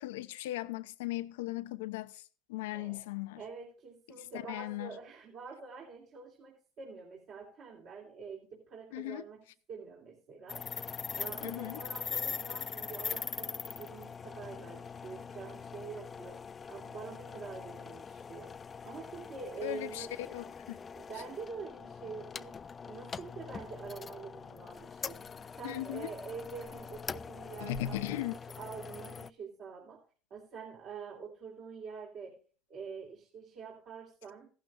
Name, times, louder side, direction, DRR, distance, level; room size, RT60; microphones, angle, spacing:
voice 1, 0.0-2.2 2.5-3.4 4.3-4.9 8.9-9.2 11.4-11.8 19.6-20.1 20.3-20.8 25.6-26.1 27.6-28.3, left 14 dB, 90° left, 0.8 m, -37 dB
voice 2, 2.7-3.1 3.4-9.4 9.7-10.7 11.1-20.3 21.0-22.6 22.9-30.0 30.3-32.4 32.7-34.5, right 5 dB, 50° right, 3.2 m, -46 dB
sound 1, 10.5-29.3, left 6 dB, 25° left, 0.4 m, -42 dB
15.0 x 12.0 x 2.4 m
supercardioid pair, 105°, 0 cm